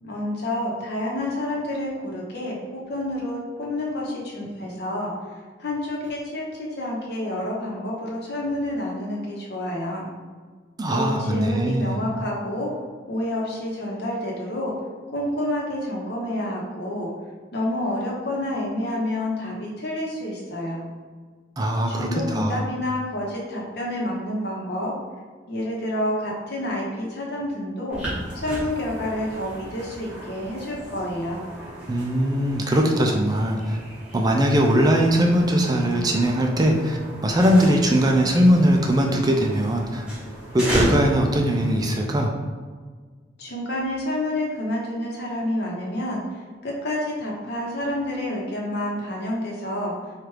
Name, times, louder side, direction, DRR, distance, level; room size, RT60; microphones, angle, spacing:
voice 1, 0.0-5.1 5.6-10.1 10.9-12.7 13.1-14.7 15.1-17.1 17.5-20.8 21.9-24.9 25.5-28.0 28.3-31.4 43.4-46.2 46.6-49.9, left 1 dB, 65° left, -3 dB, 0.9 m, -28 dB
voice 2, 10.8-12.0 21.6-22.7 31.9-33.8 34.1-37.0 37.2-40.1 40.5-42.3, equal, 20° right, 1 dB, 0.4 m, -20 dB
sound 1, 27.9-41.9, right 1 dB, 5° right, 1.1 m, -34 dB
4.5 x 2.4 x 3.2 m, 1.5 s
head